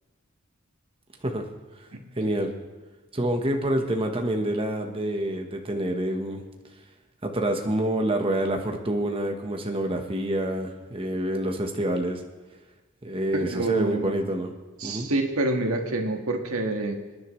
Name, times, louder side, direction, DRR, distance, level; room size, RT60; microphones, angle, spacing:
voice 1, 2.2-2.5 3.1-6.4 7.2-12.2 13.0-14.5 14.8-15.1, right 1 dB, 25° right, 3 dB, 1.2 m, -27 dB
voice 2, 13.3-14.1 14.8-17.0, right 2 dB, 90° right, 3 dB, 1.7 m, -27 dB
25.5 x 10.5 x 3.2 m, 1.3 s
head